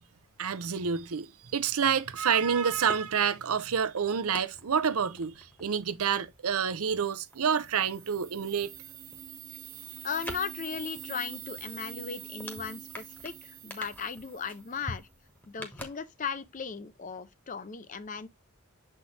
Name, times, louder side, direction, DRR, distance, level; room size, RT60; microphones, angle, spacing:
voice 1, 0.4-8.7, right 7 dB, 80° right, 0.6 m, -28 dB
sound 1, 1.7-8.3 8.6-16.5 16.8-16.9, left 1 dB, 10° left, 1.0 m, -48 dB
sound 2, 7.0-14.9, right 10 dB, 35° right, 0.8 m, -46 dB
voice 2, 10.0-15.1 15.5-18.3, left 6 dB, 35° left, 0.5 m, -37 dB
6.9 x 4.3 x 3.2 m
head